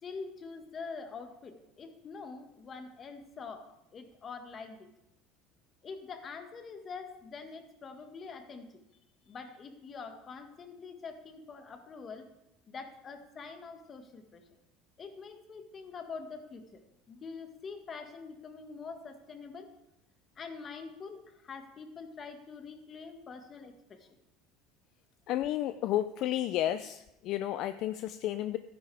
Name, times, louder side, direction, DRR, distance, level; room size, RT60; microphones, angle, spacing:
voice 1, 0.0-3.7 3.9-4.9 5.8-8.8 9.2-12.3 12.7-14.5 15.0-19.7 20.3-24.1, left 5 dB, 35° left, 6 dB, 1.6 m, -45 dB
voice 2, 25.3-28.6, left 13 dB, 60° left, 11 dB, 0.4 m, -32 dB
12.5 x 10.0 x 3.5 m, 0.88 s
supercardioid pair, 105°, 0 cm